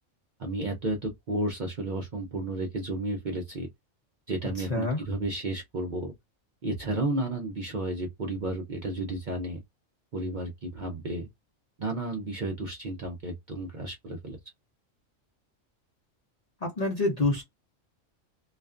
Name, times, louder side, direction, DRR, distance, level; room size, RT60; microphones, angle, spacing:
voice 1, 0.4-3.7 4.3-6.1 6.6-9.6 10.1-11.3 11.8-14.4, right 2 dB, 55° right, 0.5 m, -32 dB
voice 2, 16.6-17.4, left 2 dB, 45° left, 0.5 m, -26 dB
2.4 x 2.2 x 2.4 m
omnidirectional pair, 1.4 m